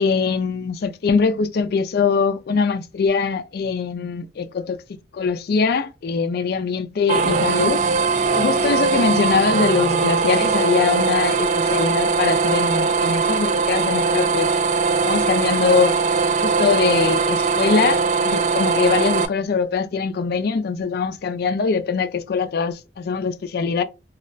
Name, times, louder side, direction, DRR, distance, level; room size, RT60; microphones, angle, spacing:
voice 1, 0.0-4.8 5.1-7.8 8.3-14.5 15.0-16.0 16.4-23.8, left 5 dB, 60° left, 0.4 m, -22 dB
sound 1, 7.1-19.3, right 4 dB, 45° right, 0.3 m, -20 dB
2.3 x 2.1 x 3.8 m
head